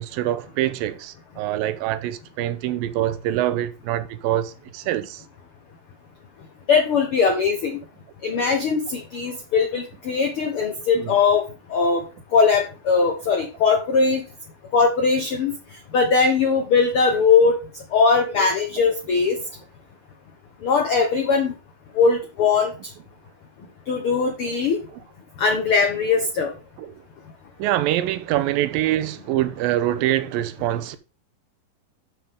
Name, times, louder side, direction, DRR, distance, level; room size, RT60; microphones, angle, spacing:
voice 1, 0.0-5.2 11.0-11.1 18.4-18.5 26.8-26.9 27.6-31.0, right 13 dB, 80° right, 2.4 m, -25 dB
voice 2, 6.7-7.8 8.2-11.4 11.7-12.0 12.3-14.2 14.7-15.5 15.9-17.6 17.9-19.4 20.6-21.5 21.9-22.7 23.9-24.8 25.4-26.5, left 5 dB, 70° left, 1.3 m, -20 dB
12.0 x 6.0 x 3.7 m
omnidirectional pair, 4.2 m